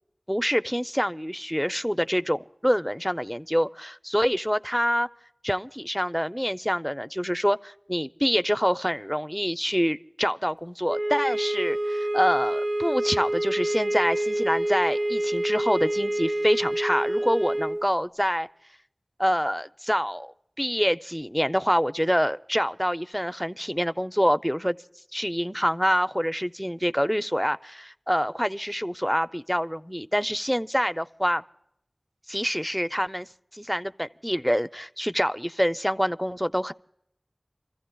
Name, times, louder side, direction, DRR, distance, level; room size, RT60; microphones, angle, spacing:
voice 1, 0.3-5.1 5.4-18.5 19.2-20.3 20.6-24.8 25.1-31.4 32.3-33.3 33.5-36.7, equal, ahead, 0.4 m, -26 dB
sound 1, 10.9-17.9, right 1 dB, 40° right, 0.6 m, -27 dB
29.0 x 14.5 x 2.2 m
wide cardioid pair, 45°, 0 cm